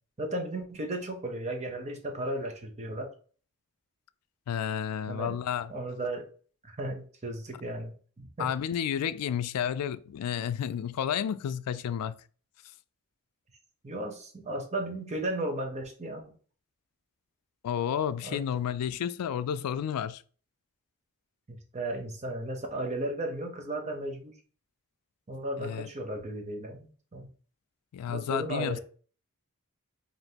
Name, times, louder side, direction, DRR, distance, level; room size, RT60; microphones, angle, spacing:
voice 1, 0.2-3.1 5.1-5.3 5.7-6.3 6.6-8.5 13.8-16.4 18.2-18.4 21.5-24.4 25.3-27.3 28.1-28.8, right 1 dB, 30° right, 0.8 m, -35 dB
voice 2, 4.5-5.7 8.4-12.2 17.6-20.2 25.6-25.9 27.9-28.8, left 8 dB, 90° left, 0.3 m, -31 dB
5.0 x 2.6 x 2.8 m
head